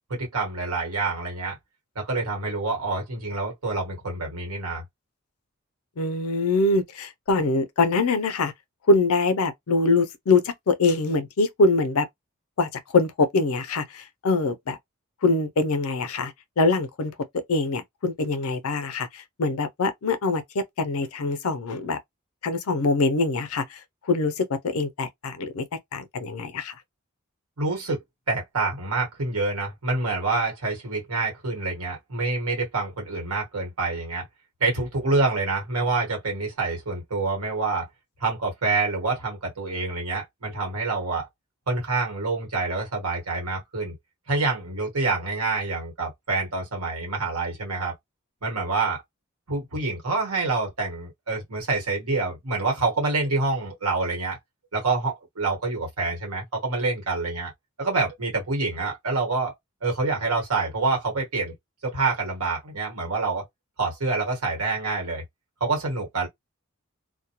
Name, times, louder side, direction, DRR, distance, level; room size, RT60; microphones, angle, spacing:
voice 1, 0.1-1.6 1.9-4.8 27.6-28.0 28.3-34.2 34.6-37.8 38.2-41.3 41.7-43.9 44.3-47.9 48.4-49.0 49.5-54.4 54.7-57.5 57.8-59.5 59.8-61.5 61.8-63.4 63.8-65.2 65.6-66.3, right 3 dB, 90° right, 1.3 m, -27 dB
voice 2, 6.0-8.5 8.9-12.1 12.6-14.8 15.2-22.0 22.4-23.8 24.1-25.7 25.9-26.7, left 3 dB, 80° left, 0.5 m, -24 dB
2.2 x 2.1 x 2.8 m
head